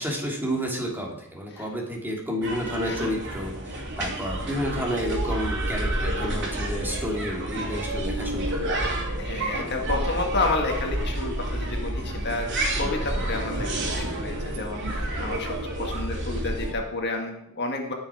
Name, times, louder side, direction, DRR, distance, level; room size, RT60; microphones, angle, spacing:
voice 1, 0.0-8.8, equal, 10° right, -1 dB, 2.7 m, -31 dB
voice 2, 1.5-2.0 2.8-3.1 9.2-17.9, left 3 dB, 50° left, 2 dB, 1.8 m, -31 dB
sound 1, 2.4-16.7, right 1 dB, 60° right, 3.0 m, -29 dB
18.5 x 6.3 x 4.9 m, 0.77 s
head